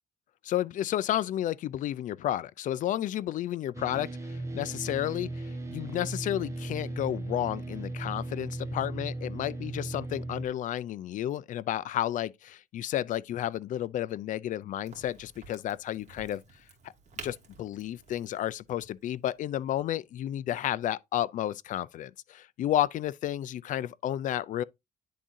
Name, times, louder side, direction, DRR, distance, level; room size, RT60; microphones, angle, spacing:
voice 1, 0.4-16.4 17.2-24.6, left 12 dB, 50° left, 0.4 m, -32 dB
sound 1, 3.7-10.5, right 2 dB, 15° right, 1.2 m, -37 dB
Crack, 14.8-20.3, right 5 dB, 45° right, 2.0 m, -50 dB
10.0 x 3.7 x 2.6 m
cardioid pair, 110°, 17 cm